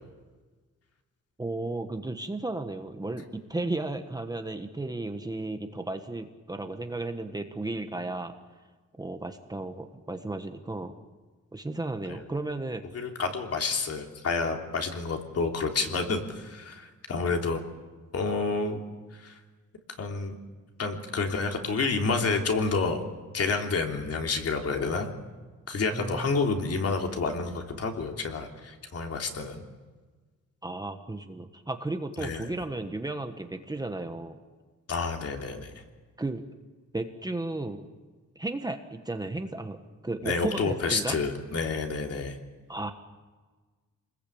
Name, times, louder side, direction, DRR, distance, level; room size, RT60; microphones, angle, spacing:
voice 1, 1.4-8.3 9.0-10.9 11.5-12.8 25.9-26.3 30.6-34.4 36.2-36.4 36.9-37.8 38.3-41.2 42.7-42.9, right 2 dB, 10° right, 6 dB, 1.3 m, -34 dB
voice 2, 12.9-17.7 18.1-18.8 19.1-19.4 20.0-20.3 20.8-23.0 23.3-25.1 25.7-29.6 32.2-32.5 34.9-35.7 40.2-42.4, left 4 dB, 50° left, 3 dB, 3.3 m, -29 dB
29.0 x 21.0 x 8.7 m, 1.3 s
wide cardioid pair, 170°, 31 cm